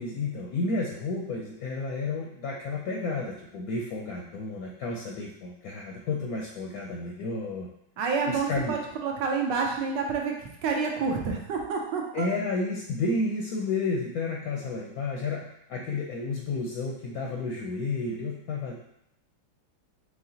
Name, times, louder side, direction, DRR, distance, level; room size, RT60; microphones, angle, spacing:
voice 1, 0.0-7.7 8.3-8.7 12.1-18.7, left 3 dB, 70° left, -2 dB, 0.9 m, -31 dB
voice 2, 8.0-10.3 10.6-12.3, right 5 dB, 70° right, 1 dB, 1.3 m, -28 dB
4.7 x 3.1 x 2.7 m, 0.78 s
omnidirectional pair, 2.1 m